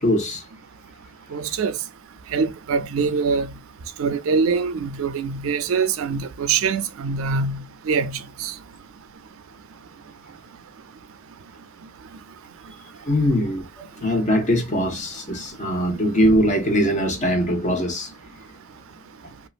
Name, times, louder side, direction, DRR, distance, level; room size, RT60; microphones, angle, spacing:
voice 1, 0.0-0.4 13.0-18.1, equal, 35° left, 1.0 m, -21 dB
voice 2, 1.3-1.8 2.3-3.5 4.0-8.5, right 5 dB, 85° right, 0.4 m, -24 dB
2.8 x 2.4 x 2.4 m
head